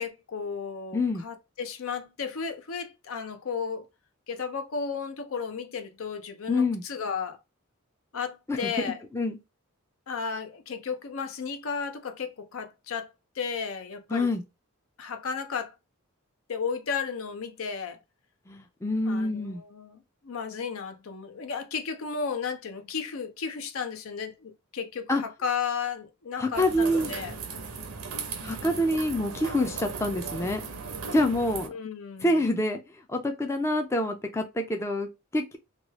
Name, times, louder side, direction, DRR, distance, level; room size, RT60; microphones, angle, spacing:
voice 1, 0.0-3.9 4.3-7.4 8.1-9.0 10.1-13.1 13.4-14.3 15.0-15.7 16.5-18.0 19.0-27.4 31.7-32.6, left 6 dB, 70° left, 0.6 m, -34 dB
voice 2, 0.9-1.2 6.5-6.8 8.5-8.6 9.1-9.4 14.1-14.4 18.5-19.6 25.1-25.2 26.4-27.1 28.4-30.6 31.1-31.7 32.2-32.8 33.1-35.6, left 1 dB, 15° left, 0.4 m, -26 dB
sound 1, 26.5-31.7, right 5 dB, 75° right, 0.7 m, -37 dB
3.0 x 2.3 x 2.9 m
head